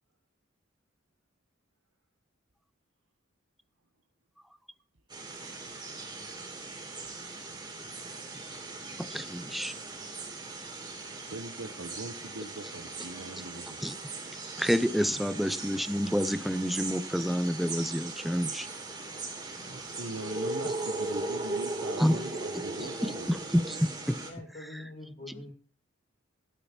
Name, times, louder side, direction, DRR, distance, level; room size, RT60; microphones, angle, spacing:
sound 1, 5.1-24.3, right 2 dB, 25° right, 3.2 m, -38 dB
voice 1, 9.1-9.7 13.8-13.9 14.6-18.7 22.0-22.2 23.3-24.2, equal, ahead, 13 dB, 0.6 m, -28 dB
voice 2, 11.3-13.8 19.6-23.4, right 2 dB, 90° right, 4 dB, 1.1 m, -41 dB
voice 3, 15.0-15.4 24.2-25.5, left 1 dB, 45° left, -2 dB, 2.5 m, -45 dB
12.5 x 8.5 x 4.4 m, 0.38 s
head